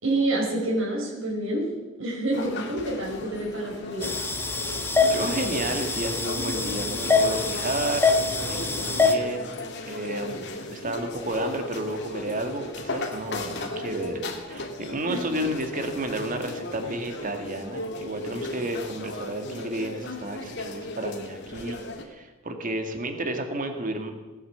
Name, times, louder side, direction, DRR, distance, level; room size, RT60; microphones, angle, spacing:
voice 1, 0.0-1.7 2.0-4.1 15.1-15.2, right 2 dB, 70° right, -2 dB, 4.8 m, -27 dB
sound 1, 2.3-22.0, left 2 dB, 60° left, 2.1 m, -36 dB
sound 2, 4.0-9.1, left 4 dB, 10° left, 1.2 m, -25 dB
voice 2, 5.1-8.1 8.5-9.6 9.9-24.1, right 1 dB, 40° right, 6 dB, 2.0 m, -31 dB
17.5 x 9.6 x 8.0 m, 1.2 s
head